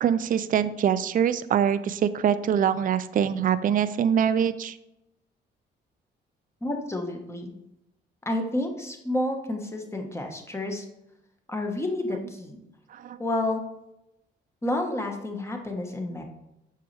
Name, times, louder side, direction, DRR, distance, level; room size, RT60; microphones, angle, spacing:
voice 1, 0.0-4.8 12.9-13.2, right 8 dB, 45° right, 13 dB, 0.4 m, -24 dB
voice 2, 6.6-7.5 8.2-10.9 11.5-12.6 13.2-13.6 14.6-16.2, left 1 dB, 15° left, 3 dB, 1.4 m, -30 dB
7.0 x 5.7 x 3.3 m, 0.88 s
cardioid pair, 90°, 20 cm